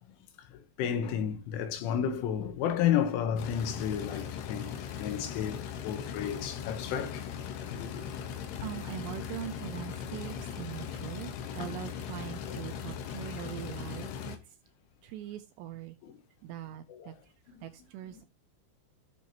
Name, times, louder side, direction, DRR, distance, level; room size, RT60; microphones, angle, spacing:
voice 1, 0.5-7.3 7.7-8.0 11.6-11.7 12.5-12.6 13.3-13.5 16.0-16.2 16.9-17.2 17.5-17.7, left 9 dB, 90° left, 3.6 m, -32 dB
sound 1, 3.4-14.4, left 8 dB, 70° left, 2.8 m, -39 dB
voice 2, 8.6-14.4 15.0-16.0 16.4-17.3 17.6-18.2, right 12 dB, 80° right, 2.5 m, -42 dB
13.5 x 6.3 x 2.9 m
omnidirectional pair, 5.5 m